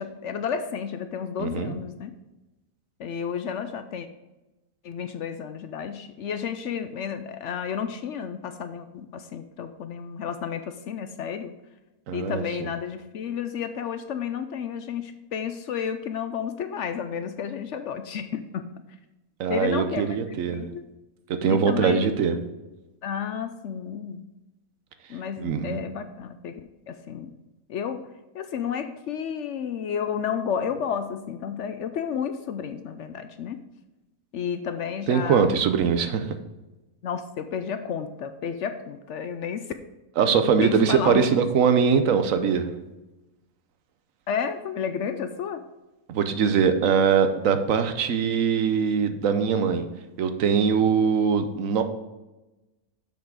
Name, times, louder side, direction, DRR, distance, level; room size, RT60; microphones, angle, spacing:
voice 1, 0.0-2.1 3.0-4.1 4.8-11.5 12.1-18.8 19.5-20.8 21.5-22.1 23.0-24.3 25.1-27.3 27.7-33.6 34.3-35.6 37.0-39.7 40.6-41.3 44.3-45.6, left 7 dB, 65° left, 9 dB, 0.8 m, -32 dB
voice 2, 1.4-1.7 12.1-12.7 19.4-20.7 21.3-22.4 25.4-25.8 35.1-36.3 40.2-42.7 46.1-49.9 50.2-51.8, right 6 dB, 70° right, 8 dB, 1.2 m, -22 dB
7.1 x 6.0 x 4.9 m, 1.0 s
omnidirectional pair, 1.5 m